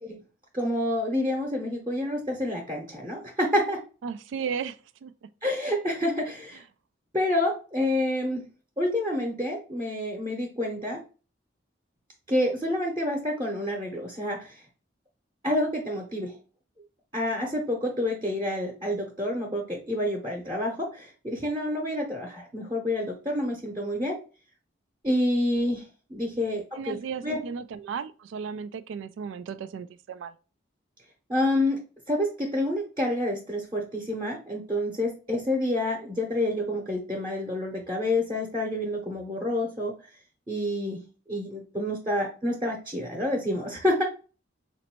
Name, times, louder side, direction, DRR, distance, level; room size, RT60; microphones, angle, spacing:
voice 1, 0.5-3.8 5.4-6.6 7.1-8.4 8.8-11.0 12.3-14.6 15.4-16.3 17.1-24.2 25.0-25.8 26.1-27.4 31.3-31.8 32.1-39.9 40.5-41.0 41.3-44.0, left 1 dB, 25° right, 0.8 m, -28 dB
voice 2, 4.0-5.1 26.8-30.3, right 6 dB, 85° right, 0.3 m, -35 dB
4.1 x 2.6 x 2.9 m
head